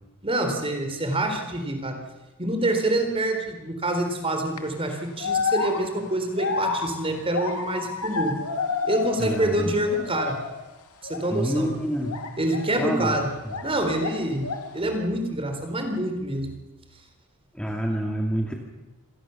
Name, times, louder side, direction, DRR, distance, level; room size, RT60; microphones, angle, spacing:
voice 1, 0.2-2.0 2.4-8.4 8.8-10.4 11.1-11.7 12.4-13.3 13.6-14.5 14.7-16.5, right 1 dB, 25° right, 5 dB, 3.9 m, -26 dB
sound 1, 4.3-4.6 5.2-9.6 9.8-10.6 11.0-11.3 12.1-13.7 14.0-14.8, left 4 dB, 90° left, 2.4 m, -30 dB
voice 2, 9.2-9.7 11.3-12.2 12.8-13.5 17.5-18.5, equal, 5° left, 1 dB, 2.4 m, -28 dB
27.0 x 18.0 x 7.1 m, 1.1 s
head